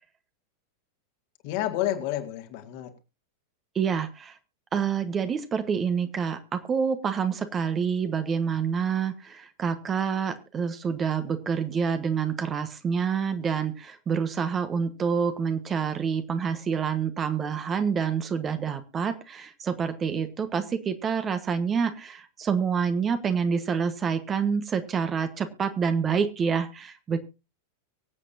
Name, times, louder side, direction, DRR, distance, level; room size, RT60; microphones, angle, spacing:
voice 1, 1.4-2.9 20.1-20.2, left 13 dB, 45° left, 6 dB, 2.1 m, -30 dB
voice 2, 3.7-4.3 4.7-27.2, right 6 dB, 25° right, 9 dB, 1.3 m, -27 dB
24.0 x 8.3 x 2.7 m, 0.28 s
figure-of-eight pair, 90°, 0 cm